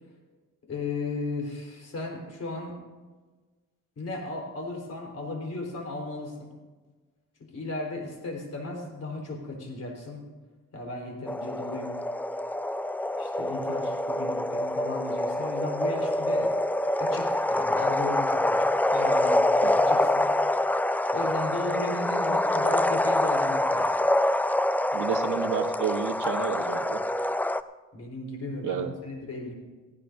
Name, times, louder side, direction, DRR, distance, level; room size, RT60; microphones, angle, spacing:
voice 1, 0.7-2.8 4.0-6.5 7.5-10.2 10.7-11.9 13.2-16.5 17.0-20.3 21.1-23.9 27.9-29.5, left 2 dB, 50° left, 1 dB, 4.0 m, -35 dB
sound 1, 11.3-27.6, left 1 dB, 5° left, 0.3 m, -26 dB
voice 2, 24.9-27.0 28.6-28.9, right 9 dB, 70° right, 6 dB, 1.2 m, -31 dB
17.5 x 17.0 x 2.6 m, 1.3 s
cardioid pair, 105°, 31 cm